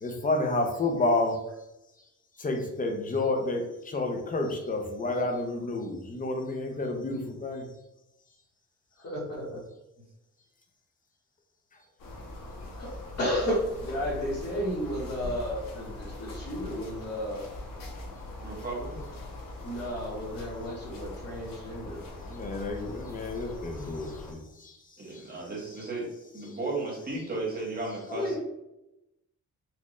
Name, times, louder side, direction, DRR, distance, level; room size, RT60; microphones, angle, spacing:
voice 1, 0.0-1.4 2.4-7.7 22.2-24.8 25.1-25.3, left 2 dB, 25° left, 3 dB, 0.4 m, -30 dB
voice 2, 9.0-9.6 12.8-12.9 13.2-17.5 19.6-22.0 28.1-28.4, equal, 50° left, -7 dB, 1.2 m, -32 dB
sound 1, 12.0-24.3, left 2 dB, 90° left, 0.9 m, -41 dB
voice 3, 18.4-19.0 25.0-26.1 26.3-28.4, right 2 dB, 30° right, -4 dB, 1.0 m, -34 dB
4.2 x 2.3 x 3.0 m, 0.90 s
wide cardioid pair, 180°, 32 cm